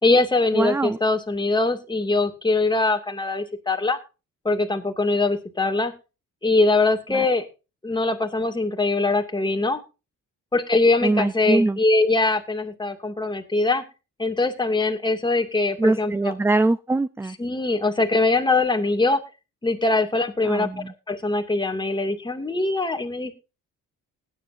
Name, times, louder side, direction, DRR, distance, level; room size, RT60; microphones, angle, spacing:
voice 1, 0.0-4.0 4.4-5.9 6.4-7.5 7.8-9.8 10.5-13.8 14.2-16.3 17.2-19.2 19.6-20.7 21.1-23.3, left 2 dB, 15° left, 5 dB, 2.5 m, -22 dB
voice 2, 0.6-1.0 11.0-11.8 15.8-17.3 20.5-20.9, right 2 dB, 5° right, 15 dB, 0.5 m, -22 dB
19.5 x 10.0 x 2.7 m, 0.31 s
cardioid pair, 125°, 32 cm